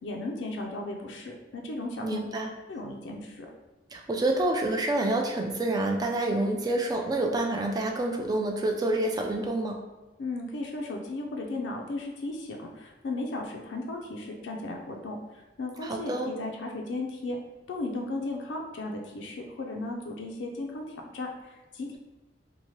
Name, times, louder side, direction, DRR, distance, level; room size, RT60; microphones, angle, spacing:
voice 1, 0.0-2.2 2.7-3.5 10.2-15.2 15.6-17.4 17.7-22.0, left 2 dB, 90° left, 1 dB, 0.4 m, -35 dB
voice 2, 2.0-2.5 3.9-9.8 15.8-16.3, right 2 dB, 20° right, 2 dB, 0.3 m, -28 dB
2.8 x 2.2 x 3.0 m, 1.1 s
head